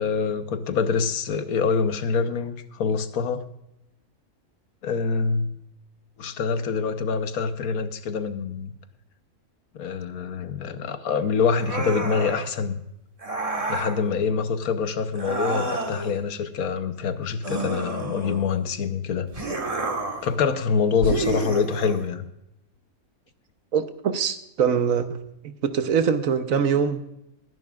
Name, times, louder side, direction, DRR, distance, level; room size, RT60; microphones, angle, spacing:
voice 1, 0.0-3.4 4.8-5.5 6.2-8.7 9.7-12.8 13.7-19.3 20.2-22.3, left 5 dB, 75° left, 10 dB, 1.3 m, -25 dB
sound 1, 11.6-12.5 13.2-14.0 15.1-16.2 17.4-18.6 19.3-20.3 21.0-22.0, right 3 dB, 25° right, 1.4 m, -29 dB
voice 2, 23.7-25.2 25.6-27.0, right 7 dB, 70° right, 9 dB, 1.3 m, -23 dB
21.5 x 11.0 x 2.4 m, 0.83 s
omnidirectional pair, 1.5 m